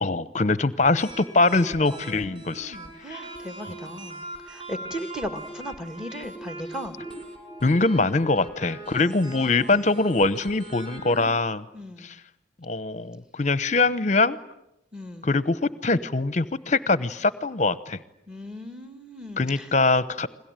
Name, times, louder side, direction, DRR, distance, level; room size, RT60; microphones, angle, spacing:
voice 1, 0.0-2.8 3.1-3.2 7.6-11.6 12.0-12.2 12.6-14.4 15.2-18.0 19.4-20.3, left 3 dB, 35° left, 16 dB, 1.0 m, -23 dB
sound 1, 0.8-11.3, right 1 dB, 25° right, 6.2 m, -41 dB
voice 2, 1.9-4.2 4.5-7.0 9.0-9.9 11.7-12.1 14.9-15.3 18.3-19.7, equal, 5° right, 9 dB, 1.9 m, -37 dB
30.0 x 22.0 x 9.1 m, 0.84 s
head